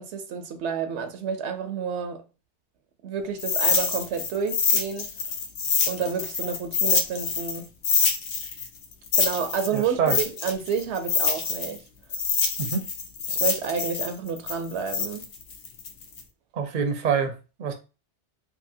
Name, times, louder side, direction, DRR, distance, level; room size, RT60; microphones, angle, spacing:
voice 1, 0.0-2.2 3.0-5.1 5.9-7.7 9.2-11.8 13.3-15.3, right 6 dB, 80° right, 0.9 m, -30 dB
sound 1, 3.4-7.6 7.8-11.8 12.1-16.2, left 5 dB, 90° left, 1.0 m, -25 dB
voice 2, 9.7-10.2 12.6-12.8 16.5-17.7, right 6 dB, 55° right, 0.6 m, -26 dB
2.7 x 2.6 x 2.6 m
omnidirectional pair, 1.1 m